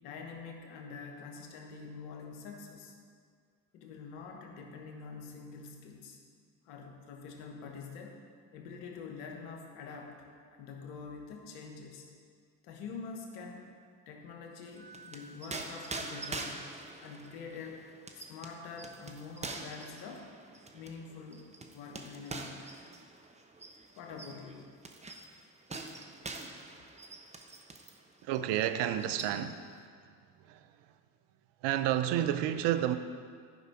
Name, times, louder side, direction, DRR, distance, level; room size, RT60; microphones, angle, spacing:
voice 1, 0.0-3.0 3.7-6.2 6.6-8.2 8.5-12.1 12.6-13.7 14.1-16.7 17.0-17.8 18.1-20.3 20.7-22.7 24.0-24.7, left 5 dB, 75° left, 1.4 m, -46 dB
Wind instrument woodwind instrument, 14.7-18.2, right 2 dB, 35° left, 1.9 m, -54 dB
sound 1, 14.7-28.0 28.3-28.5 28.8-29.7, right 3 dB, 15° right, 0.9 m, -45 dB
voice 2, 28.2-29.8 30.4-30.7 31.6-33.0, right 11 dB, 60° right, 0.7 m, -30 dB
11.0 x 5.4 x 4.8 m
hypercardioid pair, 60°, 48 cm